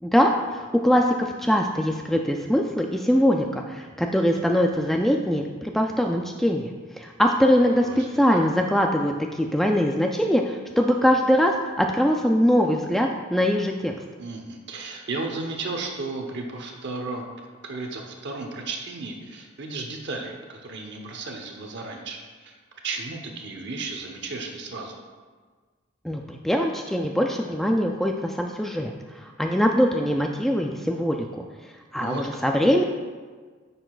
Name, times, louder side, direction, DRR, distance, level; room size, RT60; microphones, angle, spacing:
voice 1, 0.0-6.7 7.0-13.9 26.0-28.9 29.2-31.4 31.9-32.8, equal, ahead, 2 dB, 0.3 m, -22 dB
voice 2, 7.7-8.4 14.2-17.2 17.6-22.5 22.8-25.0 32.0-32.4, right 3 dB, 60° right, 2 dB, 0.8 m, -34 dB
9.8 x 6.7 x 2.4 m, 1.5 s
head